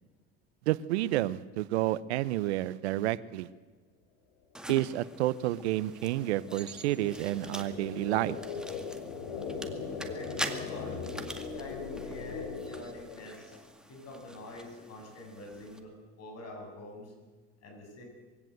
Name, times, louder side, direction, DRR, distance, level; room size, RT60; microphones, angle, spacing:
voice 1, 0.7-3.5 4.7-8.4, right 15 dB, 80° right, 18 dB, 0.8 m, -30 dB
sound 1, 4.6-15.8, right 1 dB, ahead, 2.1 m, -45 dB
sound 2, 4.8-13.6, left 5 dB, 80° left, 3.3 m, -40 dB
voice 2, 10.0-11.0 11.4-13.6 13.9-15.9 16.2-17.1 17.6-18.0, left 1 dB, 50° left, 2 dB, 7.8 m, -46 dB
22.5 x 16.5 x 7.9 m, 1.3 s
hypercardioid pair, 80°, 32 cm